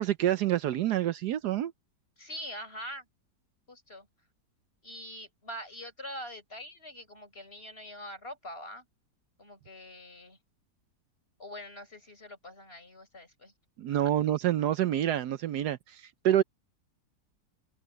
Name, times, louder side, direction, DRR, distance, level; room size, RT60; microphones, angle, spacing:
voice 1, 0.0-1.7 13.8-16.4, right 12 dB, 75° right, 1.2 m, -27 dB
voice 2, 2.2-3.1 3.7-4.1 4.8-8.9 9.4-10.4 11.4-13.5 13.9-14.1, equal, 35° left, 6.5 m, -44 dB
omnidirectional pair, 1.8 m